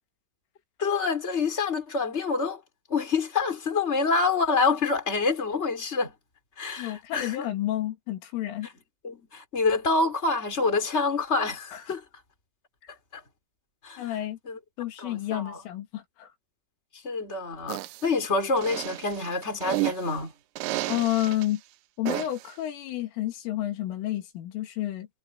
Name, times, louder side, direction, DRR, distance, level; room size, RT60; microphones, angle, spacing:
voice 1, 0.8-2.6 2.9-6.1 6.6-7.4 9.0-12.0 13.1-13.2 13.8-14.2 14.4-14.6 15.0-15.6 17.0-20.3, left 4 dB, 15° left, 4.2 m, -27 dB
voice 2, 6.8-8.7 11.7-11.8 14.0-14.4 14.8-16.3 20.9-21.6 22.0-25.1, left 13 dB, 80° left, 4.6 m, -30 dB
sound 1, 17.7-18.1 18.6-20.1 20.6-21.5 22.1-22.5, right 18 dB, 80° right, 2.8 m, -32 dB
omnidirectional pair, 5.7 m